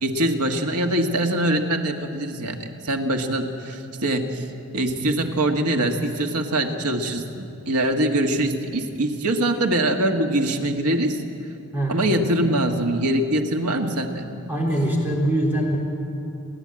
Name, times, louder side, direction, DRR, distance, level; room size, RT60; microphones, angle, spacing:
voice 1, 0.0-4.5 4.7-11.2 11.9-14.3, right 1 dB, 90° right, 3 dB, 1.7 m, -23 dB
voice 2, 14.5-15.8, right 1 dB, 10° right, -3 dB, 3.6 m, -23 dB
30.0 x 11.0 x 8.8 m, 2.7 s
head